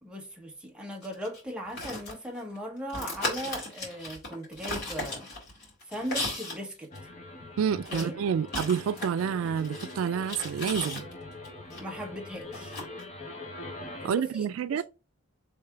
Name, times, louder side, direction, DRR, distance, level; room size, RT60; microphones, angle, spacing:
voice 1, 0.0-5.3 5.9-6.9 7.9-8.2 11.8-12.8 14.0-14.8, equal, 5° right, 1.0 m, -38 dB
sound 1, 1.0-2.6 2.9-6.6 6.9-7.0 7.8-11.8 12.5-13.0, left 2 dB, 55° left, 2.1 m, -36 dB
sound 2, 6.9-14.1, left 2 dB, 35° left, 0.9 m, -43 dB
voice 2, 7.6-11.0 14.0-14.8, right 7 dB, 90° right, 0.3 m, -28 dB
3.4 x 3.2 x 4.5 m
head